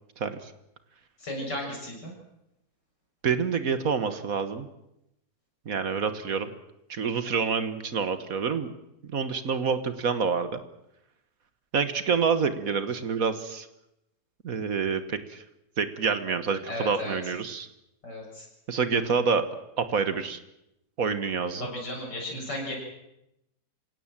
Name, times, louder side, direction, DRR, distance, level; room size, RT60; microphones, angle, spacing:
voice 1, 0.2-0.5 3.2-4.7 5.6-6.5 6.9-8.7 9.0-10.6 11.7-13.7 14.4-15.4 15.8-17.7 18.7-19.4 19.8-20.4 21.0-21.7, right 5 dB, 55° right, 11 dB, 1.7 m, -27 dB
voice 2, 1.2-2.1 16.7-17.3 18.0-18.5 21.6-22.7, left 1 dB, 85° left, 0 dB, 7.4 m, -35 dB
26.5 x 17.0 x 7.5 m, 0.87 s
omnidirectional pair, 1.8 m